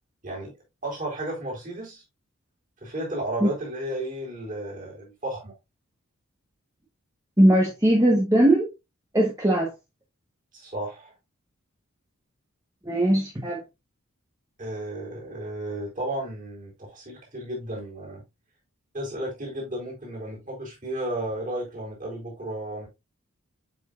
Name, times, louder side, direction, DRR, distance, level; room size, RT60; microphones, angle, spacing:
voice 1, 0.8-2.0 2.8-5.5 10.5-11.1 14.6-18.2 18.9-22.9, right 1 dB, 35° right, 4.0 m, -33 dB
voice 2, 7.4-8.7 9.1-9.7 12.8-13.6, right 1 dB, 15° right, 1.3 m, -20 dB
7.8 x 5.4 x 2.5 m
head